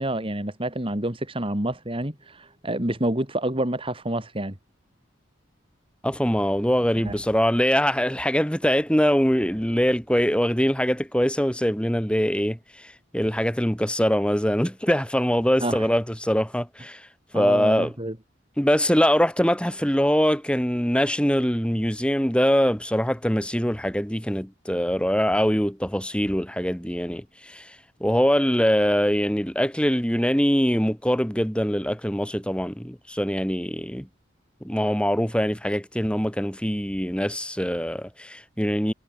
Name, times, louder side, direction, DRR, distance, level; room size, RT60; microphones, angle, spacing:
voice 1, 0.0-4.6 7.0-7.1 15.6-15.9 17.3-18.1, right 1 dB, 30° right, 2.8 m, -28 dB
voice 2, 6.0-17.0 17.3-17.9 18.6-27.7 28.0-34.1 34.6-38.9, equal, 5° left, 6.7 m, -23 dB
head